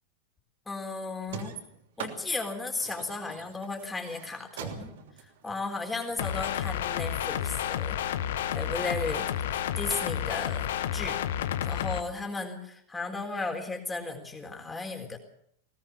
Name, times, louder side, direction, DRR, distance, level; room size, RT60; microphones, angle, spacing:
voice 1, 0.7-1.5 2.0-4.9 5.2-8.0 8.5-11.2 11.6-15.2, left 3 dB, 10° left, 4 dB, 4.0 m, -35 dB
sound 1, 1.3-6.5, right 7 dB, 55° right, 2.9 m, -42 dB
sound 2, 6.2-12.0, left 10 dB, 60° left, 1.2 m, -30 dB
21.0 x 17.5 x 7.2 m, 0.70 s
figure-of-eight pair, 90°, 0 cm